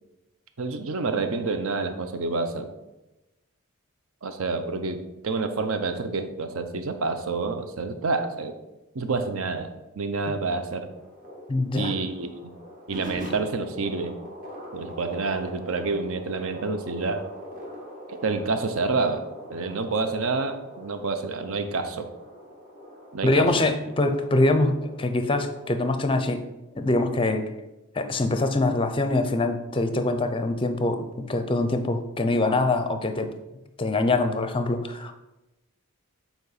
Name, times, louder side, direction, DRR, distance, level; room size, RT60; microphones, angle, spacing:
voice 1, 0.6-2.7 4.2-5.0 5.2-8.5 8.9-9.7 10.0-10.9 11.7-12.5 12.9-14.1 14.7-17.2 18.1-19.2 19.5-22.0 23.1-23.5, right 3 dB, 65° right, 8 dB, 0.6 m, -28 dB
sound 1, 10.7-25.7, equal, 35° right, 1.4 m, -43 dB
voice 2, 11.5-11.9 23.2-26.4 26.7-27.5 28.0-33.3 33.8-35.1, left 2 dB, 25° left, 8 dB, 0.5 m, -24 dB
8.3 x 4.5 x 4.0 m, 1.0 s
head